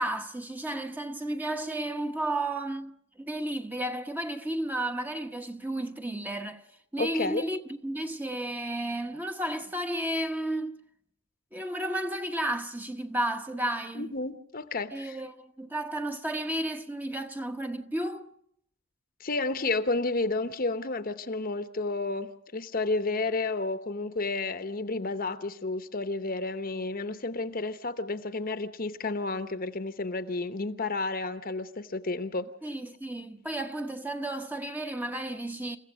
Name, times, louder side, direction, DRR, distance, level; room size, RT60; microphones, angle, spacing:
voice 1, 0.0-6.6 6.9-10.8 11.5-14.1 14.9-18.3 32.6-35.8, right 1 dB, 10° right, 0.9 m, -33 dB
voice 2, 7.0-7.4 14.0-15.2 19.2-32.5, left 3 dB, 40° left, 0.9 m, -31 dB
29.0 x 15.5 x 6.4 m
head